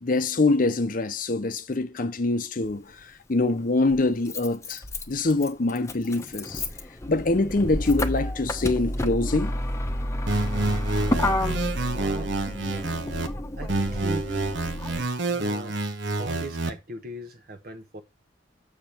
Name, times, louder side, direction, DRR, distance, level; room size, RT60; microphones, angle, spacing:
voice 1, 0.0-6.6 7.1-9.6, left 2 dB, 50° left, 0.7 m, -25 dB
Motor vehicle (road), 2.6-2.7 3.9-15.0, left 1 dB, 15° left, 0.8 m, -30 dB
sound 1, 10.3-13.3 13.7-16.7, right 2 dB, 80° right, 1.0 m, -28 dB
voice 2, 11.9-12.3 13.6-14.3 15.3-15.8 16.2-18.0, right 1 dB, 55° right, 1.0 m, -38 dB
7.0 x 6.6 x 4.3 m
head